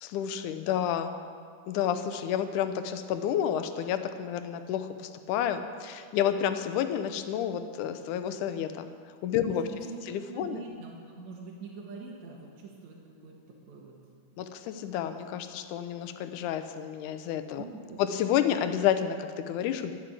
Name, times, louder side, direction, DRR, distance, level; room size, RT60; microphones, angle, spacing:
voice 1, 0.0-1.2 1.7-8.9 9.2-9.7 10.1-10.6 14.4-17.6 18.0-19.9, left 9 dB, 80° left, 9 dB, 2.2 m, -30 dB
voice 2, 9.4-14.0 17.6-18.0, right 4 dB, 65° right, -3 dB, 2.7 m, -44 dB
12.0 x 9.5 x 7.6 m, 2.1 s
omnidirectional pair, 3.5 m